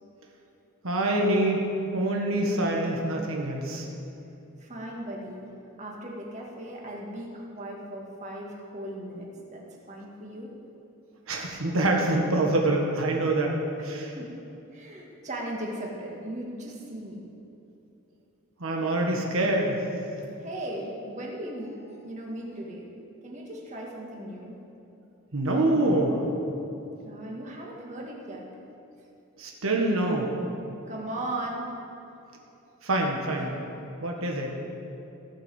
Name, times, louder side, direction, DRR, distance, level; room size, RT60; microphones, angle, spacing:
voice 1, 0.8-1.6 1.9-3.8 11.3-14.1 18.6-19.8 25.3-26.2 29.4-30.3 32.8-33.5 34.0-34.5, right 1 dB, 85° right, 0 dB, 1.5 m, -25 dB
voice 2, 4.6-5.5 5.8-10.6 13.8-14.3 14.7-17.2 20.4-22.9 23.2-24.5 27.0-28.5 30.9-31.7 33.4-33.5, right 1 dB, 35° right, -2 dB, 1.9 m, -37 dB
16.0 x 5.8 x 7.6 m, 2.8 s
head